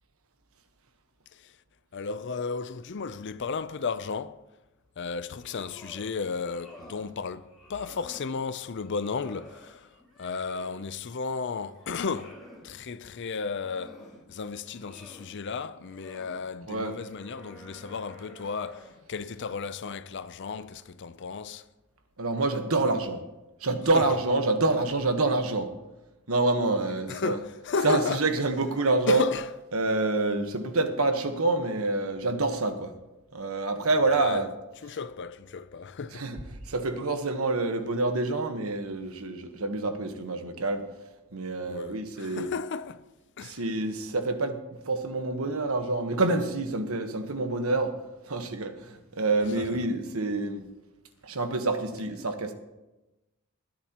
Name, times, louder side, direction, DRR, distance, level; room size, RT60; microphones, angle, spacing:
voice 1, 1.9-4.4 5.0-14.0 14.3-21.6 23.9-24.2 27.0-28.2 29.1-29.5 33.9-34.5 34.8-36.3 41.7-43.0 43.4-43.6 49.5-49.8, left 5 dB, 55° left, 0.5 m, -34 dB
sound 1, 5.2-6.1 6.4-7.1 7.5-8.3 8.8-10.8 11.3-12.7 13.3-14.2 14.6-15.3 15.8-16.4 16.9-19.1, left 1 dB, ahead, 4.0 m, -51 dB
voice 2, 22.2-23.2 23.6-25.7 26.3-27.4 27.8-29.2 29.7-32.9 33.3-34.5 36.1-36.4 36.7-40.8 41.3-42.5 43.4-44.6 44.8-47.9 48.2-50.6 51.2-52.5, right 2 dB, 70° right, 1.3 m, -27 dB
20.0 x 10.5 x 3.0 m
head